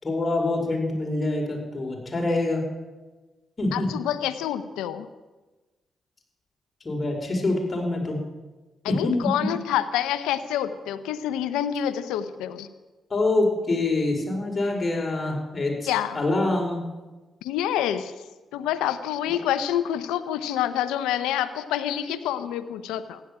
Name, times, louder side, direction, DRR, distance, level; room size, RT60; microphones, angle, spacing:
voice 1, 0.0-2.7 3.6-3.9 6.8-8.2 8.9-9.0 13.1-16.8 19.3-19.4, left 2 dB, 35° left, 0 dB, 5.2 m, -25 dB
voice 2, 3.7-5.1 8.8-12.7 15.9-16.2 17.4-18.1 18.5-23.2, left 10 dB, 85° left, 12 dB, 0.8 m, -27 dB
15.5 x 10.5 x 8.9 m, 1.2 s
hypercardioid pair, 45°, 0 cm